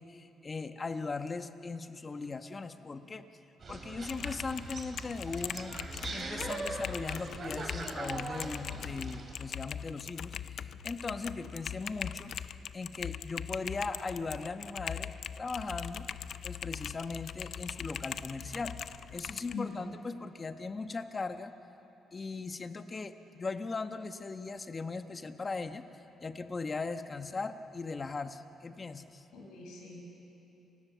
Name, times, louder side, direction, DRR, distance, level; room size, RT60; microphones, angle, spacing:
voice 1, 0.0-3.3 3.7-5.8 6.0-15.1 15.4-16.1 16.4-18.8 19.1-21.5 22.1-25.8 26.2-29.2, left 4 dB, 30° left, 8 dB, 1.2 m, -39 dB
sound 1, 3.6-9.3, right 3 dB, 45° right, 3.0 m, -41 dB
Typing, 4.0-19.5, left 8 dB, 65° left, 0.6 m, -41 dB
voice 2, 19.5-19.9 29.3-30.0, left 5 dB, 85° left, -1 dB, 6.7 m, -42 dB
29.5 x 16.5 x 7.0 m, 3.0 s
cardioid pair, 90°, 0 cm